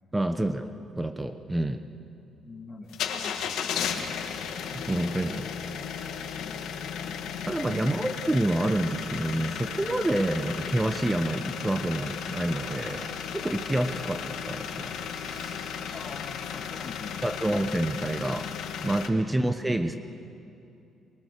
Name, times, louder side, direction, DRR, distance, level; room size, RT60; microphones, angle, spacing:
voice 1, 0.1-0.7 1.0-1.8 4.5-5.5 7.5-13.1 13.3-14.9 17.2-20.0, right 1 dB, 15° right, 8 dB, 1.0 m, -28 dB
voice 2, 2.4-3.9 5.1-5.6 6.4-7.0 7.7-7.9 15.9-17.5, left 3 dB, 30° left, 4 dB, 2.2 m, -45 dB
sound 1, 2.9-19.1, left 7 dB, 80° left, 1.8 m, -35 dB
Male speech man speaking / Female speech woman speaking / Conversation, 9.0-16.3, right 2 dB, 50° right, 7.0 m, -53 dB
23.0 x 22.0 x 6.8 m, 2.7 s
cardioid pair, 80°, 0 cm